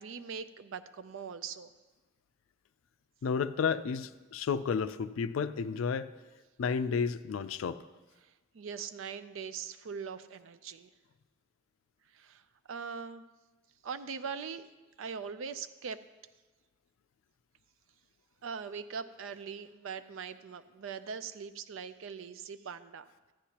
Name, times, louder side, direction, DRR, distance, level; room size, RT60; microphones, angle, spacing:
voice 1, 0.0-1.7 8.2-10.9 12.1-12.4 12.7-13.3 13.8-14.7 15.0-16.0 18.4-23.3, right 6 dB, 80° right, 12 dB, 0.4 m, -41 dB
voice 2, 3.2-6.1 6.6-7.8, left 6 dB, 85° left, 12 dB, 0.4 m, -31 dB
13.5 x 9.9 x 2.9 m, 1.2 s
head